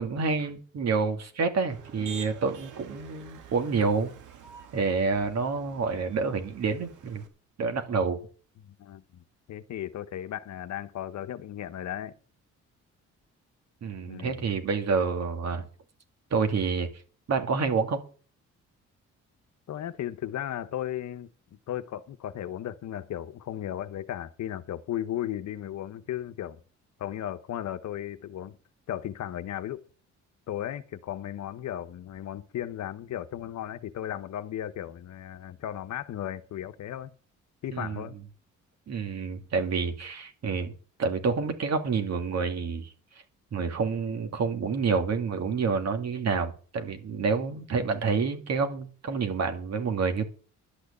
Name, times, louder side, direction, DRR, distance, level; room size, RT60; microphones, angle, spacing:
voice 1, 0.0-4.1 4.7-7.2 7.6-8.2 13.8-15.7 16.3-16.9 17.3-18.0 37.7-38.0 38.9-40.7 41.0-42.9 43.5-50.3, right 5 dB, 60° right, 2.5 m, -28 dB
Motor vehicle (road), 1.7-7.3, right 7 dB, 85° right, 2.0 m, -47 dB
voice 2, 8.6-9.2 9.5-12.2 14.1-14.5 19.7-26.6 27.0-28.6 28.9-29.9 30.5-37.1 37.6-38.2, left 11 dB, 65° left, 1.0 m, -35 dB
11.5 x 6.4 x 8.4 m
cardioid pair, 90°, 30 cm